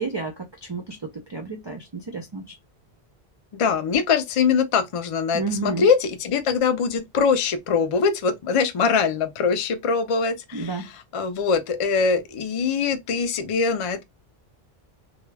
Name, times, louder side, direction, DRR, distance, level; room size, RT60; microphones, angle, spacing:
voice 1, 0.0-2.5 5.3-5.9 10.5-10.9, right 4 dB, 40° right, 0.4 m, -31 dB
voice 2, 3.5-14.0, left 5 dB, 55° left, 0.3 m, -23 dB
2.2 x 2.2 x 3.2 m
omnidirectional pair, 1.1 m